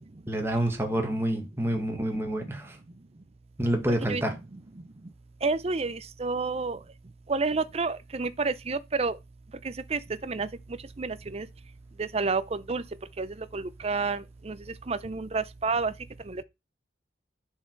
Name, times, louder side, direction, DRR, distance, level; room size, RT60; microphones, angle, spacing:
voice 1, 0.3-2.8 3.6-4.4, right 1 dB, 15° right, 1.7 m, -28 dB
voice 2, 5.4-6.8 7.3-9.2 9.6-10.5 11.0-11.5 12.0-12.8 13.2-14.6 14.9-15.9 16.3-16.4, right 4 dB, 35° right, 0.6 m, -29 dB
10.5 x 4.7 x 4.5 m
head